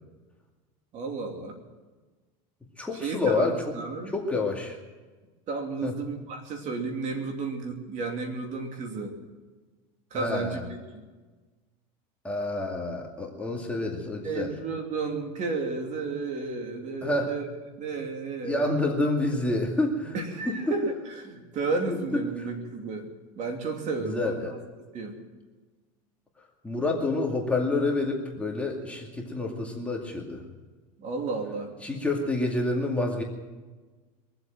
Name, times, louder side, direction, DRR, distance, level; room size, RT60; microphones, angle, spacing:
voice 1, 0.9-1.6 3.0-4.1 5.5-9.1 10.1-10.6 14.2-17.5 17.8-18.7 20.1-23.1 23.4-24.6 24.9-25.2 31.0-31.7, right 3 dB, 45° right, 3 dB, 2.9 m, -32 dB
voice 2, 2.8-3.7 4.1-4.8 5.8-5.9 10.1-10.6 12.2-14.5 17.0-17.3 18.4-20.2 20.5-20.7 21.9-22.5 24.0-24.5 26.6-30.4 31.8-33.2, left 2 dB, 5° left, -1 dB, 2.3 m, -28 dB
23.0 x 7.9 x 7.7 m, 1.3 s
supercardioid pair, 120°, 18 cm